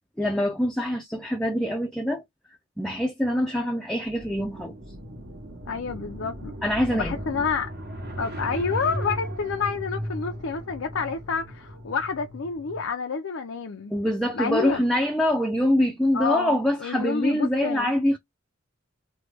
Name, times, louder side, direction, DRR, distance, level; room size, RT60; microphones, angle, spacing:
voice 1, 0.2-2.2 2.8-4.7 6.6-7.2 13.9-18.2, left 1 dB, 5° left, 0.5 m, -24 dB
sound 1, 4.0-12.9, equal, 55° right, 1.2 m, -36 dB
voice 2, 5.7-6.5 6.9-7.7 8.2-13.9 14.3-14.8 16.1-17.9, left 5 dB, 75° left, 0.5 m, -29 dB
3.1 x 2.2 x 3.2 m
head